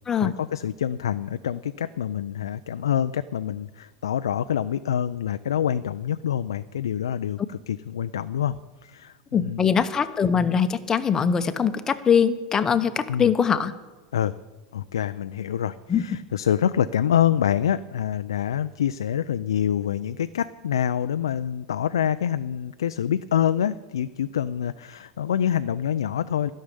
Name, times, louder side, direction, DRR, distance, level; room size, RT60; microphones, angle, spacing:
voice 1, 0.2-9.7 13.1-13.3 14.1-14.3 14.7-26.5, left 9 dB, 90° left, 11 dB, 0.4 m, -26 dB
voice 2, 9.3-13.7 15.9-16.0, left 7 dB, 25° left, 10 dB, 1.0 m, -22 dB
12.5 x 6.6 x 9.8 m, 1.2 s
hypercardioid pair, 105°, 2 cm